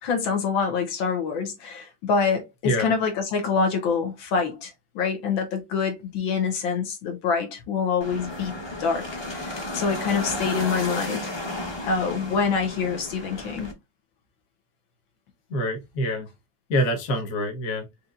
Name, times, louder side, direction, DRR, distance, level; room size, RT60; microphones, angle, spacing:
voice 1, 0.0-8.5 8.8-9.1 9.3-11.3 11.9-13.7, left 5 dB, 70° left, 1.8 m, -26 dB
sound 1, 8.0-13.7, left 1 dB, 30° left, 0.4 m, -33 dB
voice 2, 15.5-16.3 16.7-17.9, equal, 50° left, 1.4 m, -25 dB
5.2 x 3.0 x 2.5 m
omnidirectional pair, 2.2 m